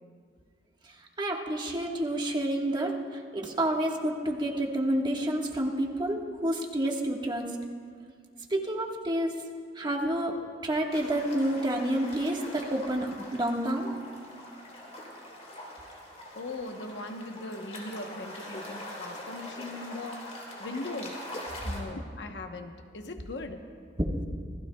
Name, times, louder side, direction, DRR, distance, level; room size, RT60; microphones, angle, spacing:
voice 1, 1.2-2.9 3.3-7.5 8.5-9.3 9.8-10.3 10.6-13.9, right 1 dB, 25° right, 0 dB, 1.4 m, -29 dB
sound 1, 10.9-21.8, left 1 dB, 40° left, 3.0 m, -43 dB
voice 2, 16.3-20.3 20.6-21.2 21.6-23.7, left 2 dB, 80° left, 6 dB, 1.0 m, -39 dB
27.0 x 15.5 x 2.3 m, 2.1 s
head